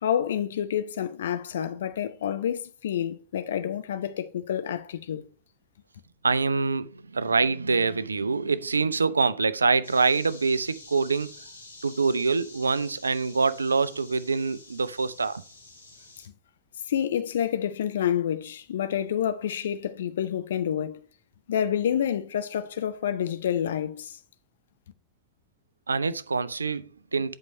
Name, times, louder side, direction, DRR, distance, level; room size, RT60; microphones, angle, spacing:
voice 1, 0.0-5.3 16.2-16.3 16.9-21.0 21.5-24.2, left 9 dB, 60° left, 0.6 m, -28 dB
voice 2, 6.2-11.3 11.8-15.4 25.9-27.4, right 4 dB, 75° right, 0.4 m, -25 dB
sound 1, 9.8-16.3, left 3 dB, 80° left, 2.1 m, -48 dB
8.0 x 4.8 x 5.2 m
figure-of-eight pair, 90°, 0 cm